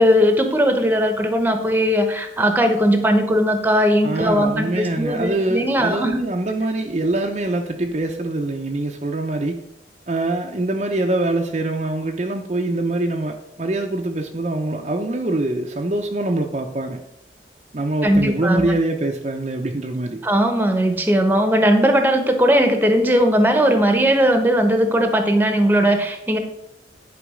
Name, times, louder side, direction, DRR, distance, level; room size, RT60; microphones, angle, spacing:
voice 1, 0.0-6.2 18.0-18.7 20.2-26.4, equal, 10° right, 6 dB, 0.9 m, -18 dB
voice 2, 4.0-9.6 10.1-17.0 17.7-20.2, right 2 dB, 35° right, 2 dB, 0.6 m, -24 dB
10.0 x 4.9 x 4.9 m, 0.83 s
head